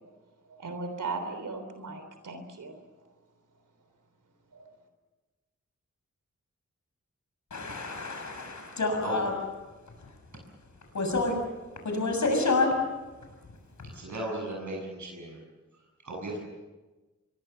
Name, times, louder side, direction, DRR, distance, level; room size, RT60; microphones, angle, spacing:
voice 1, 0.5-2.8 4.5-4.7, right 3 dB, 90° right, 7 dB, 3.4 m, -37 dB
voice 2, 7.5-9.3 10.9-11.3 11.8-12.8, left 3 dB, 70° left, 3 dB, 6.9 m, -28 dB
voice 3, 13.9-15.4 16.0-16.4, right 1 dB, 70° right, 0 dB, 7.4 m, -36 dB
25.0 x 23.0 x 6.9 m, 1.2 s
wide cardioid pair, 65°, 30 cm